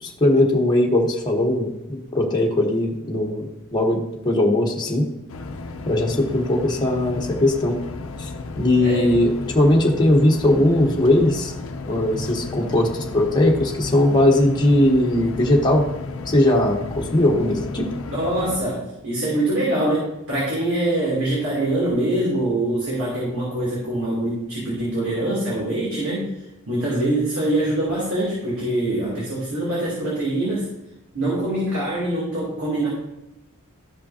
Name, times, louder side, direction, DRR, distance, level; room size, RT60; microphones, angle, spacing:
voice 1, 0.0-5.1 5.9-7.8 8.2-8.3 8.6-11.5 11.9-15.9 16.3-17.9, left 1 dB, 20° left, -2 dB, 1.2 m, -19 dB
sound 1, 5.3-18.6, left 3 dB, 70° left, 0.6 m, -33 dB
voice 2, 8.8-9.1 18.1-26.3 26.7-30.7 31.1-32.9, right 1 dB, 85° right, -7 dB, 2.9 m, -24 dB
13.0 x 5.4 x 2.8 m, 0.91 s
head